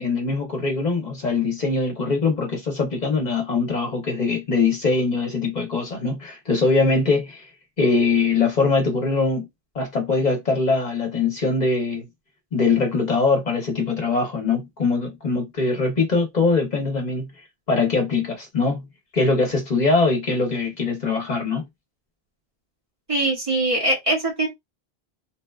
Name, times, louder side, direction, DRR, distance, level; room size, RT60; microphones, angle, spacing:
voice 1, 0.0-7.5 7.8-9.5 9.7-12.1 12.5-17.3 17.7-18.9 19.1-21.7, left 4 dB, 50° left, 0.7 m, -22 dB
voice 2, 23.1-24.5, right 1 dB, 35° right, 0.8 m, -22 dB
2.8 x 2.2 x 2.2 m
omnidirectional pair, 1.1 m